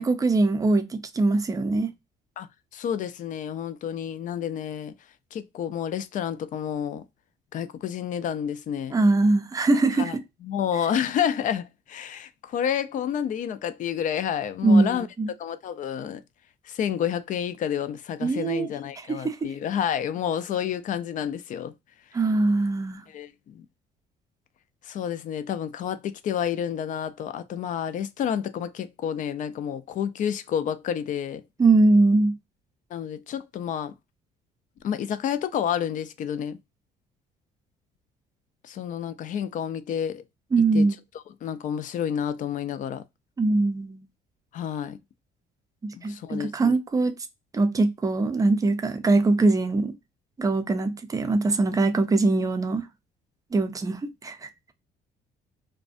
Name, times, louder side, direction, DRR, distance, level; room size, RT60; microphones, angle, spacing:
voice 1, 0.0-1.9 8.9-10.2 14.6-15.3 18.2-18.7 19.1-19.5 22.1-23.0 31.6-32.3 40.5-41.0 43.4-44.0 45.8-47.1 47.5-49.9 50.4-52.9 53.5-54.7, right 3 dB, 20° right, 0.4 m, -22 dB
voice 2, 2.7-4.9 5.3-7.0 7.5-9.0 10.0-10.1 10.4-15.1 15.4-16.2 16.7-21.7 23.1-23.6 24.8-31.4 32.9-33.9 34.8-36.6 38.6-40.2 40.7-40.9 41.4-43.0 44.5-45.0 45.9-46.8, left 9 dB, 50° left, 0.4 m, -29 dB
2.5 x 2.2 x 2.4 m
cardioid pair, 110°, 17 cm